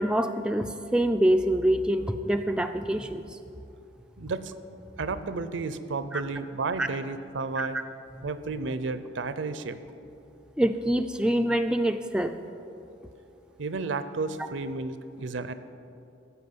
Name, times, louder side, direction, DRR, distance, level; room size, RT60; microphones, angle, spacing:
voice 1, 0.0-3.2 6.1-6.2 6.8-6.9 7.6-7.7 10.6-12.3, right 1 dB, 5° right, 6 dB, 0.3 m, -25 dB
voice 2, 4.2-4.5 5.0-7.8 8.2-9.8 13.6-15.5, right 3 dB, 70° right, 12 dB, 0.6 m, -32 dB
14.0 x 5.7 x 7.7 m, 2.7 s
head